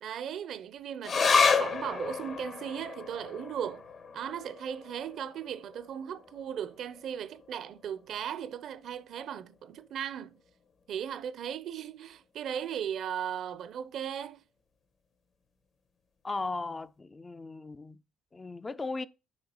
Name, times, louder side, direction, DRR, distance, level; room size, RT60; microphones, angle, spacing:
voice 1, 0.0-3.8 4.1-10.4 10.9-14.4, right 9 dB, 65° right, 0.5 m, -37 dB
sound 1, 1.0-7.8 8.1-8.2 8.6-9.2 9.8-9.9, left 5 dB, 55° left, 1.1 m, -31 dB
voice 2, 16.2-18.0 18.3-19.1, left 3 dB, 25° left, 0.3 m, -37 dB
7.4 x 5.2 x 2.9 m
cardioid pair, 95°, 0 cm